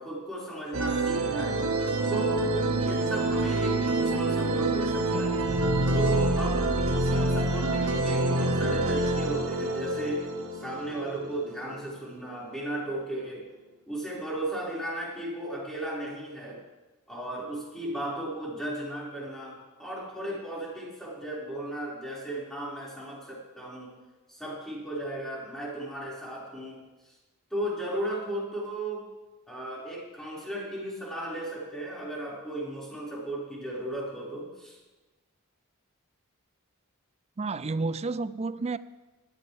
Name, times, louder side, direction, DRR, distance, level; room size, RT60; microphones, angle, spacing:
voice 1, 0.0-1.6 2.1-5.4 5.9-13.5 13.9-16.6 17.1-23.9 24.3-26.8 27.5-29.1 29.5-34.8, right 1 dB, ahead, -7 dB, 5.4 m, -35 dB
sound 1, 0.7-12.1, right 2 dB, 80° right, 1.5 m, -27 dB
voice 2, 37.4-38.8, right 3 dB, 30° right, 15 dB, 0.4 m, -30 dB
19.0 x 14.0 x 3.5 m, 1.2 s
head